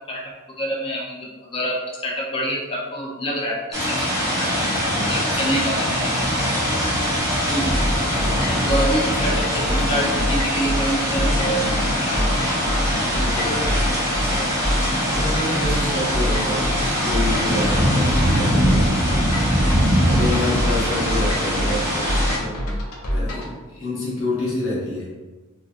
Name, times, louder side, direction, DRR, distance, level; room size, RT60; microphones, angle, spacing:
voice 1, 0.1-4.5 5.1-6.4 7.5-8.2 8.5-11.6 12.0-12.3 13.4-13.8 14.1-14.5, equal, 25° left, -2 dB, 0.4 m, -27 dB
sound 1, 3.7-22.4, equal, 15° right, 0.7 m, -22 dB
voice 2, 4.9-5.2 12.9-13.9 15.1-18.8 19.6-22.6 23.1-25.1, left 1 dB, 70° left, -6 dB, 1.1 m, -28 dB
sound 2, 7.7-23.5, equal, 85° left, 0.5 m, -26 dB
2.5 x 2.3 x 2.4 m, 1.2 s
head